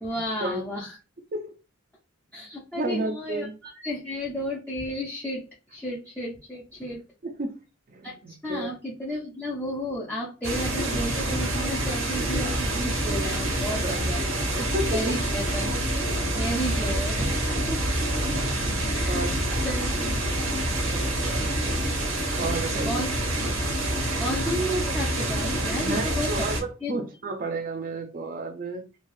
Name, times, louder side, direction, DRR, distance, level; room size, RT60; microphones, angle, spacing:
voice 1, 0.0-1.0 2.3-7.0 8.0-14.2 14.9-15.7 16.4-17.3 17.7-17.8 18.9-19.3 19.6-20.2 22.9-23.1 24.2-27.0, equal, 5° left, 0.6 m, -32 dB
voice 2, 2.7-3.5 7.2-7.5 7.9-8.8 13.8-14.2 14.5-15.0 19.0-19.4 20.9-21.5 22.4-23.1 25.8-28.8, right 2 dB, 40° right, 0.5 m, -32 dB
sound 1, 10.4-26.6, right 1 dB, 80° right, 1.1 m, -27 dB
3.2 x 2.3 x 2.5 m
head